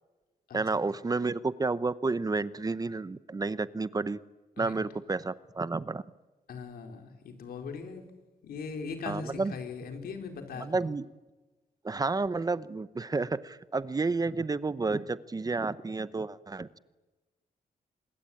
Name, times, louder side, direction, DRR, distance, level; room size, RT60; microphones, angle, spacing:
voice 1, 0.5-4.2 4.6-6.0 9.1-9.5 10.6-11.1 11.8-16.8, right 3 dB, 25° right, 16 dB, 0.8 m, -31 dB
voice 2, 6.5-8.0 8.4-10.7, left 5 dB, 85° left, 5 dB, 4.5 m, -40 dB
25.5 x 22.0 x 9.0 m, 1.2 s
cardioid pair, 115°, 15 cm